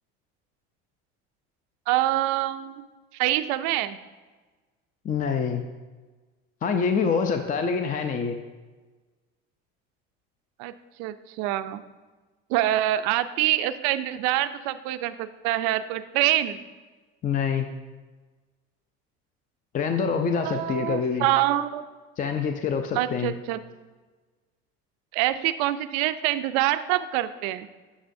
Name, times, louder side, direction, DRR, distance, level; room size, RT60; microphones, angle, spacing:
voice 1, 1.9-2.8 3.1-4.0 10.6-10.7 11.0-11.8 12.5-16.6 20.4-21.8 22.9-23.6 25.1-27.7, right 14 dB, 80° right, 12 dB, 0.5 m, -25 dB
voice 2, 5.0-5.6 6.6-8.4 17.2-17.7 19.7-21.3 22.2-23.3, left 6 dB, 25° left, 6 dB, 0.5 m, -26 dB
11.0 x 6.1 x 2.6 m, 1.3 s
supercardioid pair, 110°, 30 cm